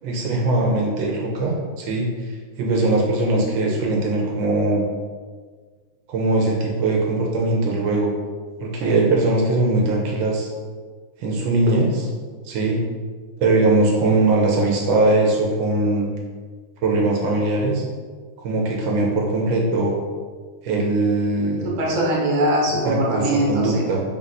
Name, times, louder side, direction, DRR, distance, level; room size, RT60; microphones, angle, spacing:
voice 1, 0.0-2.1 2.6-4.9 6.1-8.1 8.6-10.5 11.2-11.9 12.4-12.8 13.4-16.1 16.8-17.8 18.4-20.0 20.6-21.7 22.8-24.0, right 2 dB, 85° right, -1 dB, 1.4 m, -20 dB
voice 2, 21.8-23.8, right 1 dB, 60° right, -4 dB, 1.3 m, -21 dB
3.9 x 2.5 x 4.1 m, 1.5 s
omnidirectional pair, 2.0 m